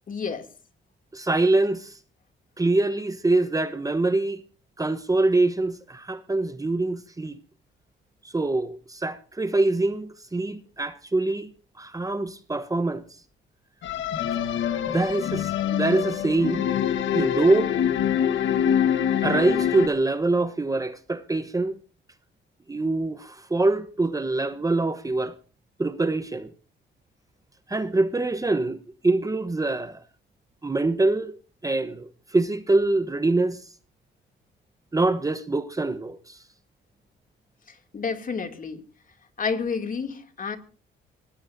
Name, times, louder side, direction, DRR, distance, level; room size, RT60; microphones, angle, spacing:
voice 1, 0.1-0.5 37.7-38.8 39.4-40.6, left 5 dB, 45° left, 2.7 m, -30 dB
voice 2, 1.1-2.0 2.6-4.4 4.8-7.4 8.2-11.5 11.8-13.0 14.9-16.6 17.1-17.8 19.2-21.8 22.7-25.3 25.8-26.5 27.7-28.8 29.0-30.0 30.6-31.3 31.6-33.6 34.9-36.4, right 2 dB, 15° right, 1.1 m, -24 dB
sound 1, 13.8-19.9, left 9 dB, 75° left, 1.5 m, -25 dB
25.0 x 19.5 x 2.7 m
cardioid pair, 90°, 20 cm